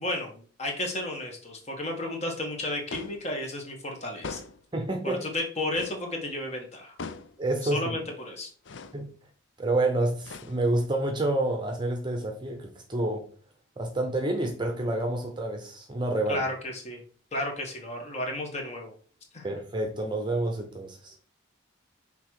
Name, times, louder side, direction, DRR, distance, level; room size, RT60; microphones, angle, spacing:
voice 1, 0.0-4.4 5.0-7.0 7.6-8.5 16.3-17.0 17.3-18.9 19.3-19.5, left 1 dB, 30° left, 1.5 m, -33 dB
sound 1, 2.9-3.3 4.2-4.7 5.7-6.1 7.0-7.4 8.6-9.0 10.2-10.8, left 4 dB, 60° left, 0.5 m, -40 dB
voice 2, 4.7-5.3 7.4-7.8 8.9-9.1 9.6-13.3 13.8-16.4 19.4-21.1, right 2 dB, 20° right, 0.8 m, -28 dB
6.1 x 3.7 x 4.7 m
head